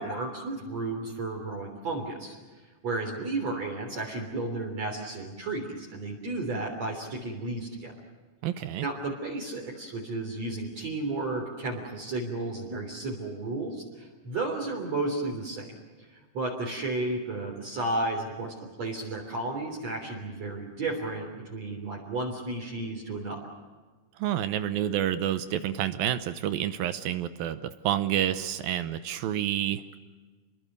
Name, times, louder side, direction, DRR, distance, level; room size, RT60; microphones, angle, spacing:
voice 1, 0.0-2.4 2.8-7.9 8.8-15.7 16.1-23.4, right 2 dB, 45° right, 0 dB, 4.4 m, -33 dB
voice 2, 8.4-8.8 24.2-30.0, right 11 dB, 75° right, 11 dB, 2.6 m, -29 dB
29.0 x 22.5 x 6.7 m, 1.3 s
omnidirectional pair, 4.5 m